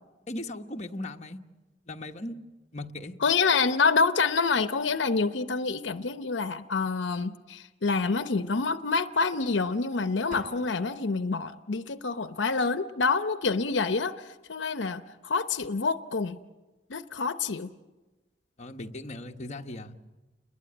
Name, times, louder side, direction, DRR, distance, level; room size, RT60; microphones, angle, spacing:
voice 1, 0.3-1.4 1.9-2.4 2.7-3.2 18.6-19.9, left 1 dB, 40° left, 3 dB, 1.3 m, -38 dB
voice 2, 3.2-16.4 16.9-17.7, left 4 dB, 80° left, 11 dB, 0.8 m, -27 dB
sound 1, 10.3-11.3, right 1 dB, 50° right, 1.9 m, -46 dB
29.5 x 21.0 x 8.9 m, 1.2 s
head